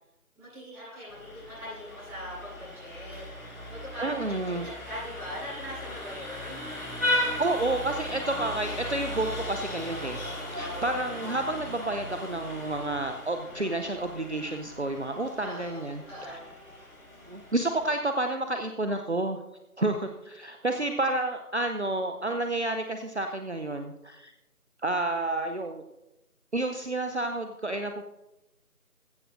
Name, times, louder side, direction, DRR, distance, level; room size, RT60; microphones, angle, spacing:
voice 1, 0.3-6.7 15.4-16.4, equal, 5° right, -17 dB, 4.5 m, -42 dB
Vehicle horn car horn honking, 1.1-17.9, left 1 dB, 70° left, 4.3 m, -36 dB
voice 2, 4.0-4.7 7.2-10.2 10.5-16.4 17.3-19.4 19.8-24.3 24.8-25.8 26.5-28.0, right 2 dB, 50° right, 6 dB, 0.7 m, -30 dB
15.0 x 13.5 x 2.6 m, 0.93 s
figure-of-eight pair, 175°, 45 cm